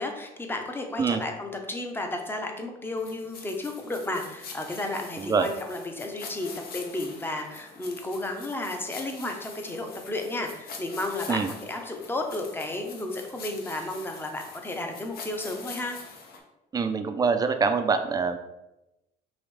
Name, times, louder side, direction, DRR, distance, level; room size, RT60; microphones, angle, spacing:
voice 1, 0.0-16.0, left 2 dB, 15° left, 3 dB, 0.7 m, -33 dB
sound 1, 3.0-16.4, left 4 dB, 60° left, 0.9 m, -44 dB
voice 2, 5.2-5.5 11.3-11.5 16.7-18.4, right 5 dB, 20° right, 8 dB, 0.4 m, -25 dB
5.1 x 3.0 x 3.2 m, 0.96 s
cardioid pair, 110°, 17 cm